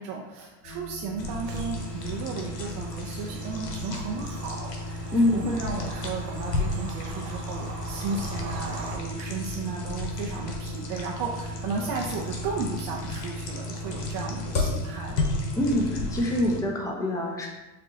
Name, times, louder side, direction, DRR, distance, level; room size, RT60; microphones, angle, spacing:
voice 1, 0.0-15.3, right 4 dB, 40° right, -2 dB, 0.6 m, -34 dB
sound 1, 0.6-16.7, right 2 dB, 35° left, 0.9 m, -41 dB
sound 2, 1.2-16.6, left 2 dB, 80° left, 1.1 m, -33 dB
Bird vocalization bird call bird song / Train, 1.4-9.0, right 3 dB, 75° right, 0.9 m, -43 dB
voice 2, 5.1-5.5 15.6-17.5, left 1 dB, 5° left, -1 dB, 0.8 m, -25 dB
7.3 x 2.5 x 2.8 m, 1.0 s
hypercardioid pair, 95°, 48 cm